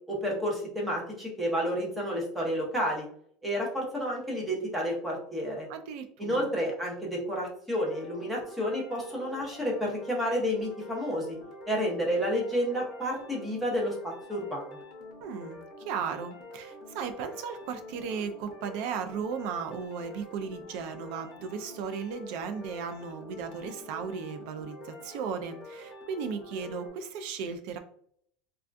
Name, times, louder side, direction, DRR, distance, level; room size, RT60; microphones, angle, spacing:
voice 1, 0.1-3.1 3.4-5.7 6.2-11.4 11.7-14.6, equal, 5° right, -2 dB, 0.8 m, -30 dB
voice 2, 5.7-6.5 15.2-27.8, right 6 dB, 55° right, 8 dB, 0.4 m, -36 dB
sound 1, 7.7-26.9, left 1 dB, 30° left, 0.8 m, -47 dB
3.5 x 2.3 x 2.5 m, 0.63 s
supercardioid pair, 175°, 0 cm